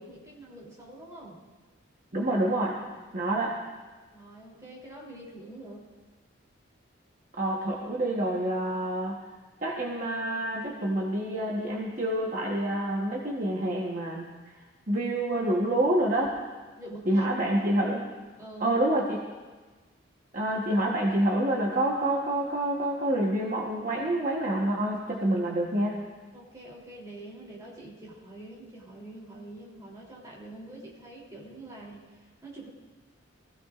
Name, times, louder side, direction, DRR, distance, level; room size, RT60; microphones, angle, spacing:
voice 1, 0.0-1.4 4.1-5.9 16.8-17.7 18.4-18.8 20.5-20.6 26.3-32.7, right 1 dB, 15° right, -5 dB, 3.1 m, -45 dB
voice 2, 2.1-2.8 3.1-3.6 7.4-9.2 9.6-14.3 14.9-16.4 17.1-18.0 18.6-19.2 20.3-26.0, right 1 dB, 40° right, -2 dB, 1.2 m, -27 dB
23.0 x 15.5 x 2.5 m, 1.3 s
head